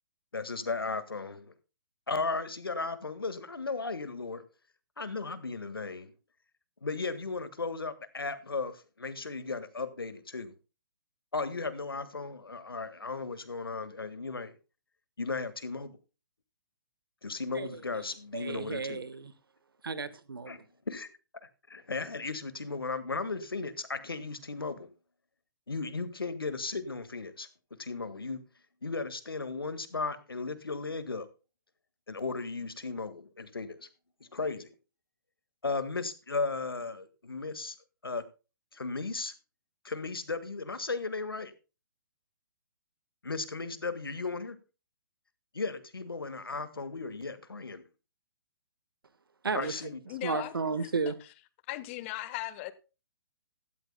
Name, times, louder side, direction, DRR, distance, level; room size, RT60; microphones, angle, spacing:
voice 1, 0.3-1.5 2.1-4.4 5.0-6.1 6.8-10.5 11.3-14.6 15.2-16.0 17.2-19.0 20.5-20.6 20.9-21.1 21.7-24.9 25.7-27.5 27.8-28.4 28.8-31.3 32.1-33.9 34.3-34.7 35.6-37.8 38.0-38.2 38.7-39.3 39.8-41.5 43.2-44.6 45.5-47.8 49.5-50.0, left 4 dB, 85° left, 1.7 m, -35 dB
voice 2, 18.3-19.3 19.8-20.6 49.4-49.7 50.2-51.2, right 4 dB, 80° right, 1.4 m, -33 dB
voice 3, 49.6-50.7 51.7-52.7, left 16 dB, 35° left, 1.2 m, -38 dB
16.5 x 13.0 x 2.2 m
figure-of-eight pair, 130°, 12 cm